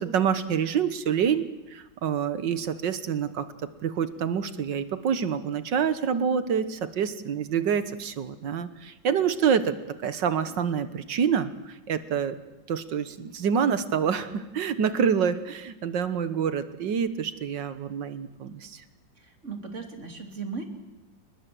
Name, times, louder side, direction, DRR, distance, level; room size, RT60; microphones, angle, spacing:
voice 1, 0.0-1.5 1.7-12.4 12.7-18.8, right 7 dB, 75° right, 12 dB, 1.8 m, -27 dB
voice 2, 19.2-20.6, right 4 dB, 40° right, 5 dB, 3.1 m, -37 dB
29.0 x 20.5 x 7.7 m, 1.0 s
omnidirectional pair, 2.0 m